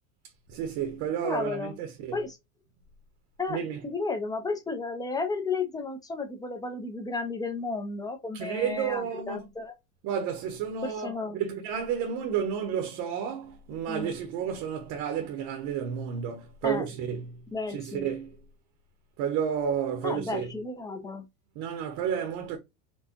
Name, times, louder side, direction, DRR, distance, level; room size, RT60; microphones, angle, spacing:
voice 1, 0.5-2.2 3.5-3.8 8.3-9.5 10.0-18.3 19.2-20.5 21.5-22.6, right 8 dB, 45° right, 1.0 m, -31 dB
voice 2, 1.2-1.7 2.1-2.4 3.4-9.8 10.8-11.4 13.9-14.1 16.6-16.9 17.5-18.1 20.0-21.2, left 3 dB, 10° left, 0.7 m, -33 dB
4.5 x 2.4 x 2.9 m
supercardioid pair, 130°, 42 cm